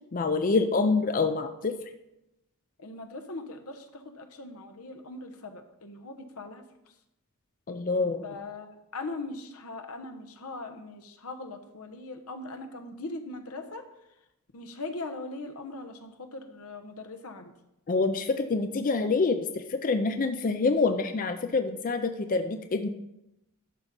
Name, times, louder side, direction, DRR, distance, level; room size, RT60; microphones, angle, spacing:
voice 1, 0.1-1.8 7.7-8.2 17.9-22.9, left 3 dB, 40° left, 8 dB, 0.5 m, -26 dB
voice 2, 2.8-6.6 8.2-13.8 14.5-17.5, left 2 dB, 85° left, 5 dB, 1.0 m, -40 dB
12.0 x 4.2 x 5.2 m, 0.88 s
head